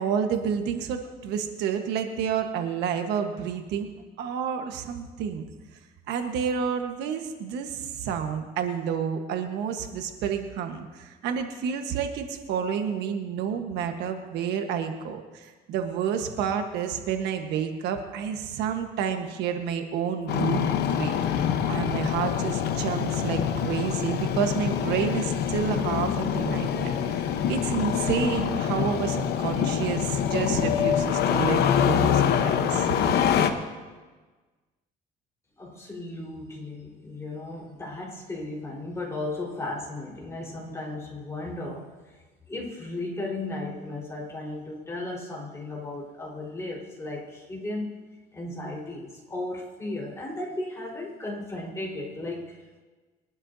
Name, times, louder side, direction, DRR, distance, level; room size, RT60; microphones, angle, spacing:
voice 1, 0.0-3.9 4.2-5.5 6.1-21.2 21.5-33.0, right 7 dB, 85° right, 5 dB, 1.3 m, -30 dB
Engine starting, 20.3-33.5, left 8 dB, 70° left, 1.0 m, -25 dB
voice 2, 35.6-42.2 42.5-47.9 48.3-52.8, left 2 dB, 15° left, -4 dB, 4.3 m, -35 dB
22.5 x 12.0 x 2.7 m, 1.3 s
cardioid pair, 110°, 17 cm